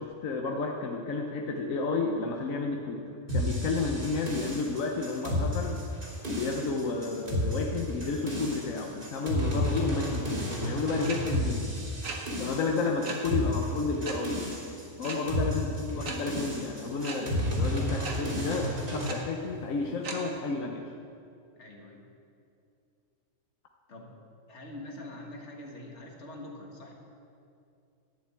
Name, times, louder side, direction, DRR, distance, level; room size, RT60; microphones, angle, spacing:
voice 1, 0.0-3.0 3.3-5.8 6.3-11.8 12.4-14.4 15.0-20.8, left 3 dB, 85° left, 1 dB, 1.3 m, -31 dB
sound 1, 3.3-19.1, left 1 dB, 40° right, 2.8 m, -32 dB
sound 2, 11.0-11.1 12.0-12.2 13.0-13.1 14.0-14.1 15.0-15.2 16.0-16.2 17.0-17.1 18.0-18.1 19.0-19.1 20.0-20.1, right 5 dB, 80° right, 1.7 m, -36 dB
voice 2, 21.6-22.0 23.9-24.1 24.5-26.9, left 1 dB, 60° left, 0 dB, 2.0 m, -44 dB
11.5 x 6.9 x 8.9 m, 2.6 s
omnidirectional pair, 1.4 m